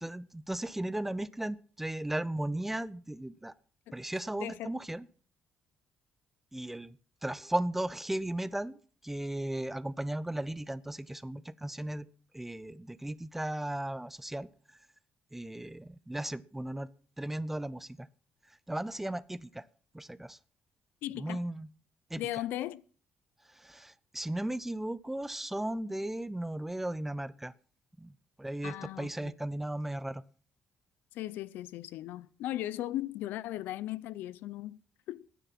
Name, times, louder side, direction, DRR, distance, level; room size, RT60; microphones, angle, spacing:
voice 1, 0.0-3.5 3.9-5.0 6.5-7.0 7.2-8.8 9.0-12.1 12.3-14.5 15.3-16.9 17.2-18.1 18.7-19.6 19.9-20.4 21.2-21.7 22.1-22.2 23.6-27.5 28.0-28.1 28.4-30.2, right 1 dB, 5° right, 0.6 m, -36 dB
voice 2, 4.3-4.7 21.0-21.4 22.2-22.8 28.6-29.3 31.1-34.8 35.1-35.2, left 14 dB, 85° left, 0.6 m, -37 dB
15.0 x 10.0 x 5.9 m
cardioid pair, 110°, 3 cm